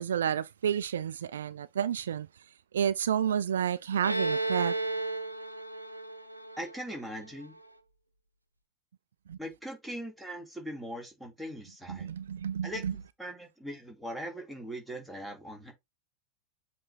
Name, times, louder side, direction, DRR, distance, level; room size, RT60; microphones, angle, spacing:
voice 1, 0.0-2.3 2.7-4.8 9.3-9.4 11.9-12.9, right 8 dB, 65° right, 0.3 m, -30 dB
Bowed string instrument, 4.0-7.6, right 2 dB, 85° right, 0.8 m, -33 dB
voice 2, 6.6-7.6 9.4-12.1 12.6-12.8 13.2-15.7, equal, ahead, 2.6 m, -40 dB
7.7 x 3.3 x 4.1 m
figure-of-eight pair, 90°, 0 cm